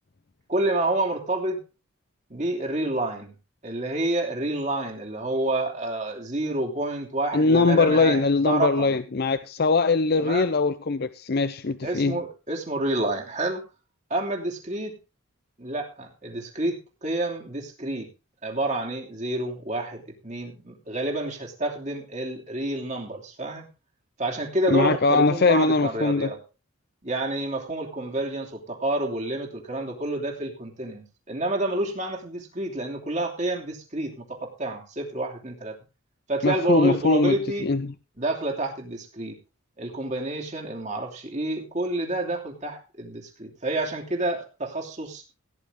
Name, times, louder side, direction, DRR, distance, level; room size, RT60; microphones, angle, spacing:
voice 1, 0.5-1.6 2.3-3.3 3.6-9.0 10.2-10.5 11.8-13.6 14.1-15.0 15.6-18.1 18.4-23.7 24.2-26.4 27.0-35.8 36.3-37.7 38.2-39.4 39.8-45.2, right 2 dB, 35° right, 3.0 m, -29 dB
voice 2, 7.3-12.2 24.7-26.3 36.4-37.3 37.6-37.9, left 3 dB, 45° left, 0.5 m, -21 dB
17.0 x 10.0 x 3.7 m
head